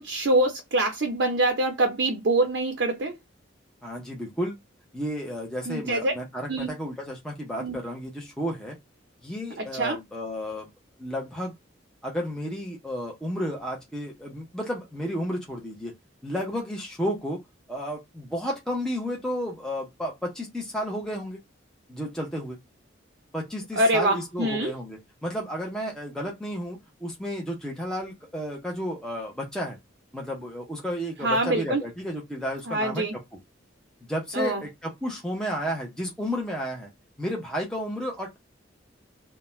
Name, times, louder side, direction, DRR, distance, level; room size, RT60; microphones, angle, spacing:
voice 1, 0.0-3.2 5.7-6.1 6.5-6.7 7.6-7.8 9.6-10.0 23.8-24.7 31.2-31.8 32.7-33.1 34.3-34.6, right 1 dB, 60° right, 0.6 m, -25 dB
voice 2, 3.8-4.6 4.9-8.8 9.2-10.7 11.0-11.5 12.0-15.9 16.2-17.4 17.7-21.4 21.9-22.6 23.3-29.8 30.1-33.0 34.1-36.9 37.2-38.4, equal, 5° left, 0.6 m, -32 dB
2.3 x 2.1 x 3.0 m
head